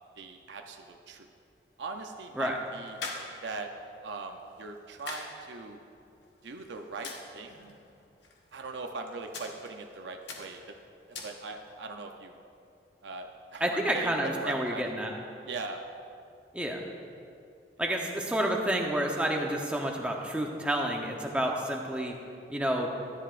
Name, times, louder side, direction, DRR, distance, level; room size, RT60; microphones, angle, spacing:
voice 1, 0.2-1.3 1.8-3.0 3.4-3.7 4.0-5.8 6.4-7.7 8.5-10.6 11.1-12.3 13.0-14.9 15.5-15.8 17.8-18.0, right 3 dB, 80° right, 4 dB, 0.6 m, -40 dB
sound 1, 1.8-11.8, left 3 dB, 80° left, 1.3 m, -47 dB
voice 2, 13.6-15.1 16.5-16.8 17.8-22.1 22.5-22.9, right 1 dB, 5° right, 0 dB, 0.8 m, -29 dB
13.0 x 11.0 x 2.5 m, 2.5 s
head